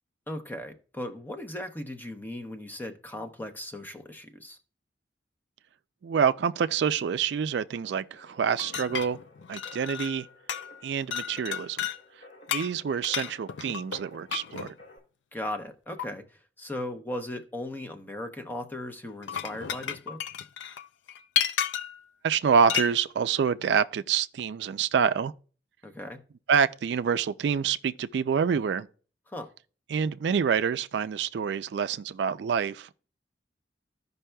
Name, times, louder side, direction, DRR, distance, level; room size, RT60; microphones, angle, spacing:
voice 1, 0.3-4.6 15.3-20.2 25.8-26.2 29.3-29.5, left 1 dB, 10° left, 0.7 m, -37 dB
voice 2, 6.0-9.2 9.5-10.3 10.8-11.9 12.5-14.7 22.2-25.3 26.5-28.9 29.9-32.9, right 7 dB, 70° right, 0.3 m, -27 dB
sound 1, 8.1-15.0, left 2 dB, 60° left, 2.6 m, -54 dB
sound 2, 8.6-10.2 10.5-10.8 11.1-12.0 12.5-14.7 16.0-16.1 19.1-22.0 22.7-22.9, left 9 dB, 90° left, 0.4 m, -32 dB
14.5 x 5.4 x 2.2 m
head